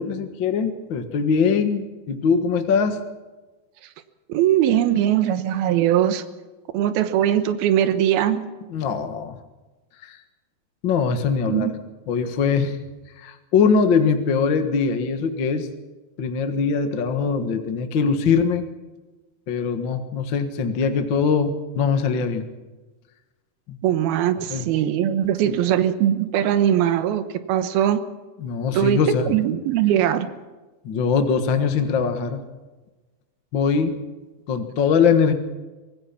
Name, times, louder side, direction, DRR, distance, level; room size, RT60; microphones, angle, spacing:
voice 1, 0.0-3.0 8.7-9.4 10.0-10.2 10.8-11.7 12.1-12.8 13.2-15.7 16.2-18.6 19.5-22.4 23.7-23.8 24.5-24.6 25.5-25.6 28.4-29.3 30.8-32.4 33.5-34.0 34.5-35.3, left 5 dB, 50° left, 7 dB, 1.5 m, -22 dB
voice 2, 4.3-6.2 6.7-8.4 11.5-11.7 23.8-28.0 28.7-29.0 29.3-30.3, right 11 dB, 85° right, 11 dB, 3.1 m, -20 dB
25.0 x 18.5 x 5.9 m, 1.2 s
omnidirectional pair, 4.2 m